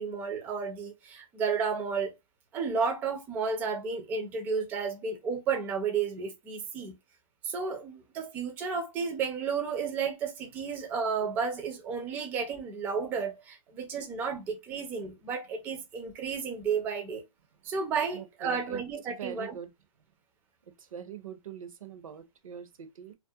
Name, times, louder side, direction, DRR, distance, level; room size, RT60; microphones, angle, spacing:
voice 1, 0.0-2.2 2.5-6.9 7.4-17.2 17.6-19.6, right 5 dB, 10° right, 0.3 m, -32 dB
voice 2, 18.1-18.8 19.1-19.7 20.8-23.1, right 8 dB, 75° right, 0.6 m, -43 dB
2.4 x 2.1 x 2.6 m
hypercardioid pair, 145°, 17 cm